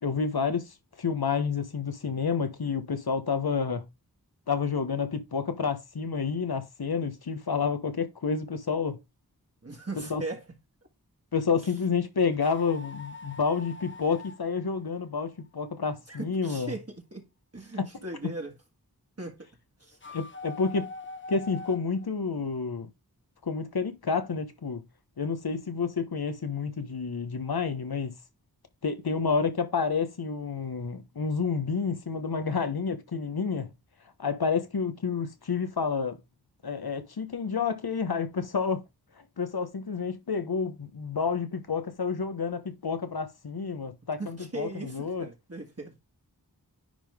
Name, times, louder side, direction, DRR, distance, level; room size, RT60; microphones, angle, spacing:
voice 1, 0.0-3.9 4.5-9.0 10.1-10.2 11.3-16.7 20.1-20.9 21.3-22.9 23.4-24.8 25.2-28.2 28.8-33.7 34.2-36.2 36.6-38.8 39.4-45.3, left 5 dB, 80° left, 1.1 m, -29 dB
voice 2, 9.6-10.5 11.6-11.7 16.1-17.3 17.5-18.5 19.2-19.5 19.8-20.0 44.2-45.9, right 2 dB, 40° right, 1.9 m, -38 dB
sound 1, 12.3-15.6 19.9-22.1, left 3 dB, 30° left, 1.0 m, -43 dB
10.0 x 3.7 x 3.5 m
wide cardioid pair, 45°, 37 cm